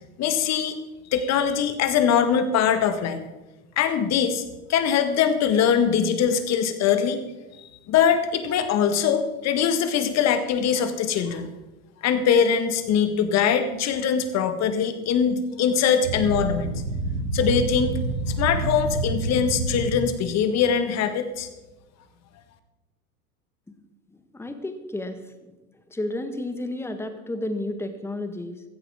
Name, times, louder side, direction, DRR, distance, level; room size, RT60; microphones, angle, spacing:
voice 1, 0.2-0.8 1.1-3.2 3.8-4.4 4.7-7.2 7.9-11.5 12.0-16.7 17.3-17.9 18.3-21.5, left 7 dB, 35° left, 9 dB, 1.7 m, -22 dB
sound 1, 16.0-20.3, right 3 dB, 80° right, 6.1 m, -28 dB
voice 2, 24.3-25.2 25.9-28.6, left 1 dB, 5° left, 8 dB, 1.4 m, -31 dB
16.0 x 15.5 x 3.7 m, 1.1 s
figure-of-eight pair, 85°, 45 cm